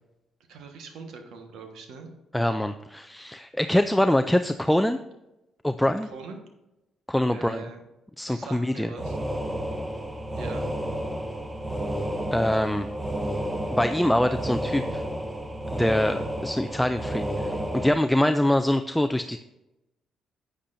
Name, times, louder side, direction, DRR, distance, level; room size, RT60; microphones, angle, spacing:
voice 1, 0.5-2.1 6.1-6.4 7.3-7.8 8.3-9.2 10.3-10.7, right 4 dB, 85° right, 4 dB, 1.4 m, -41 dB
voice 2, 2.3-5.0 5.6-6.1 7.1-7.6 8.2-8.9 12.3-12.9 13.7-15.1 15.7-19.4, left 1 dB, 5° left, 8 dB, 0.4 m, -24 dB
sound 1, 9.0-17.9, equal, 15° right, 1.0 m, -31 dB
9.9 x 8.8 x 2.6 m, 0.94 s
cardioid pair, 90°, 0 cm